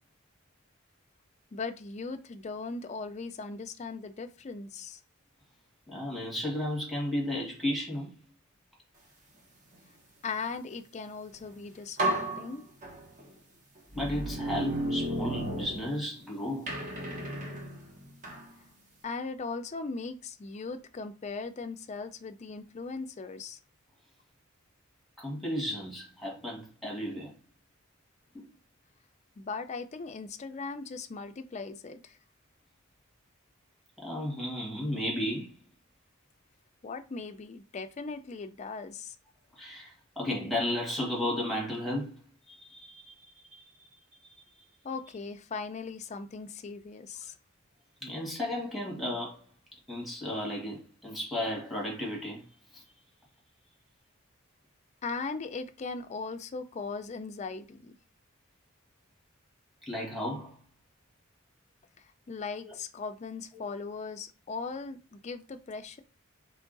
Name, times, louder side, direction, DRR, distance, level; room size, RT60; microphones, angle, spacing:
voice 1, 1.5-5.0 10.2-12.6 19.0-23.6 29.4-32.2 36.8-39.2 44.8-47.3 55.0-58.0 62.3-66.0, left 4 dB, 35° left, 0.4 m, -38 dB
voice 2, 5.9-8.2 13.9-16.7 25.2-27.3 28.3-28.5 34.0-35.5 39.6-42.2 42.5-43.2 43.5-43.6 48.0-49.4 49.9-52.4 52.7-52.8 59.9-60.5 62.6-62.7 63.5-63.7, left 1 dB, ahead, 1.3 m, -34 dB
sound 1, 11.4-11.5 12.0-13.3 13.9-16.2 16.7-18.5, right 1 dB, 35° right, 0.9 m, -33 dB
3.6 x 3.1 x 3.9 m
head